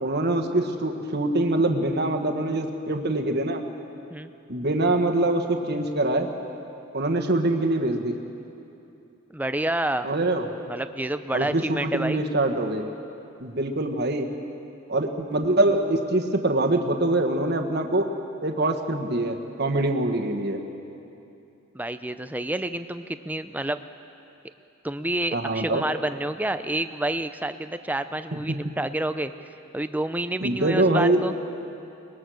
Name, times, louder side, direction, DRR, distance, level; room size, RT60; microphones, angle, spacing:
voice 1, 0.0-3.6 4.5-6.3 6.9-8.1 10.0-10.4 11.3-12.8 13.4-14.3 14.9-18.1 18.4-20.6 25.3-25.8 30.4-31.3, right 2 dB, 50° right, 4 dB, 1.5 m, -24 dB
voice 2, 9.3-10.1 10.7-12.2 21.7-23.8 24.8-29.3 29.7-31.3, right 1 dB, 10° right, 10 dB, 0.5 m, -29 dB
23.0 x 20.5 x 6.4 m, 2.8 s
head